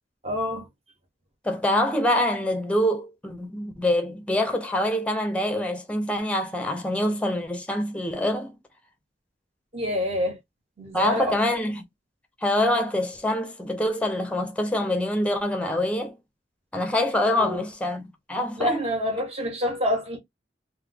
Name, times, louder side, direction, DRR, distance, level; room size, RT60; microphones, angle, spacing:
voice 1, 0.2-0.7 9.7-10.4 10.8-11.4 17.3-17.7 18.6-20.2, equal, 35° right, 1.3 m, -27 dB
voice 2, 1.4-8.6 10.9-11.8 12.4-16.1 16.7-18.8, left 1 dB, 5° left, 0.6 m, -25 dB
3.1 x 2.1 x 3.4 m
head